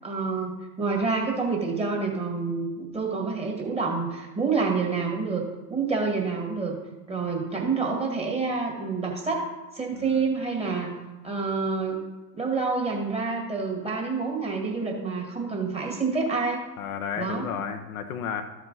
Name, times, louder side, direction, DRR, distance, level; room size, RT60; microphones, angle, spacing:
voice 1, 0.0-6.8 7.1-9.4 9.7-10.9 11.2-12.0 12.3-16.6 17.2-17.5, right 4 dB, 10° right, 0 dB, 1.9 m, -28 dB
voice 2, 9.9-10.3 16.8-18.4, left 7 dB, 55° left, 6 dB, 0.9 m, -33 dB
13.0 x 4.9 x 3.9 m, 1.1 s
figure-of-eight pair, 80°, 50 cm